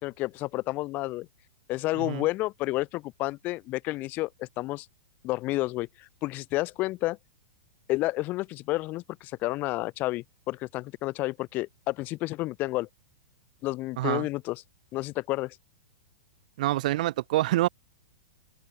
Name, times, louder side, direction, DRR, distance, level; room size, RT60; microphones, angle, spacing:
voice 1, 0.0-1.3 1.7-4.9 5.2-7.2 7.9-12.9 13.6-14.6 14.9-15.6, left 19 dB, 35° left, 1.4 m, -30 dB
voice 2, 16.6-17.7, right 16 dB, 55° right, 1.4 m, -26 dB
open air
figure-of-eight pair, 105°, 5 cm